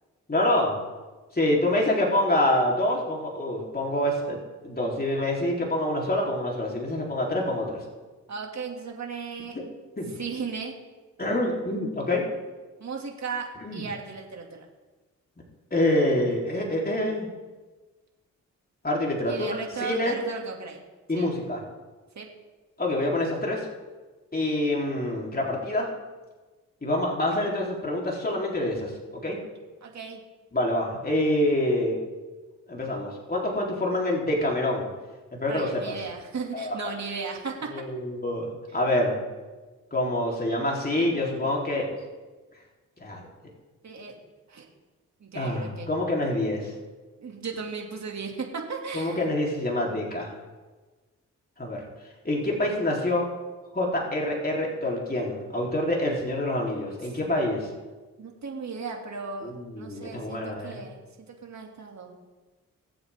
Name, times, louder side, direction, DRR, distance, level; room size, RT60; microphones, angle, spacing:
voice 1, 0.3-0.7 1.3-4.4 4.6-7.8 10.0-10.2 11.2-12.2 13.6-13.8 15.7-17.3 18.8-19.5 19.8-20.2 21.1-21.6 22.8-23.6 24.3-25.9 26.8-28.9 29.2-29.4 30.5-32.0 32.7-34.9 35.3-36.0 36.5-36.8 37.7-39.2 39.9-41.9 43.0-43.2 45.3-46.7 48.9-50.3 51.6-51.8 52.2-53.3 53.7-57.7 59.4-60.8, left 1 dB, 30° left, -2 dB, 3.7 m, -26 dB
voice 2, 8.3-9.6 10.2-10.8 12.8-14.7 19.3-20.8 21.1-21.3 22.2-22.3 29.8-30.2 35.5-37.7 40.5-41.3 43.8-44.2 44.5-44.7 45.2-45.9 47.2-49.2 57.1-57.2 58.2-59.5 59.8-61.0 61.4-62.1, right 5 dB, 55° right, 1 dB, 2.6 m, -36 dB
20.5 x 7.9 x 3.7 m, 1.3 s
cardioid pair, 55°, 32 cm